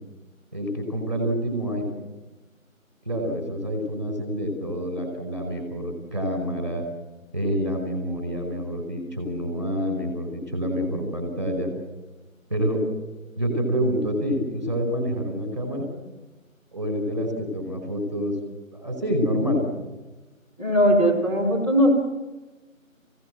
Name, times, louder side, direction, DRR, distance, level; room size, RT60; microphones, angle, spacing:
voice 1, 0.5-1.9 3.0-6.9 7.3-11.7 12.5-12.8 13.3-15.9 16.7-18.3 18.7-19.6, equal, 20° right, 4 dB, 5.0 m, -27 dB
voice 2, 20.6-21.9, equal, 25° left, -6 dB, 3.9 m, -19 dB
28.0 x 17.0 x 7.7 m, 1.2 s
figure-of-eight pair, 175°, 41 cm